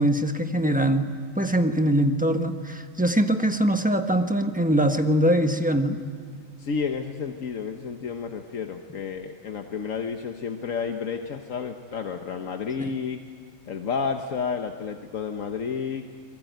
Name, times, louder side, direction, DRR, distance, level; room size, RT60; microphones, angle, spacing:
voice 1, 0.0-6.0 12.8-12.9, right 1 dB, 5° right, 6 dB, 1.3 m, -23 dB
voice 2, 6.6-13.2 13.7-16.0, left 6 dB, 75° left, 5 dB, 1.5 m, -31 dB
28.5 x 22.0 x 9.3 m, 2.1 s
omnidirectional pair, 1.4 m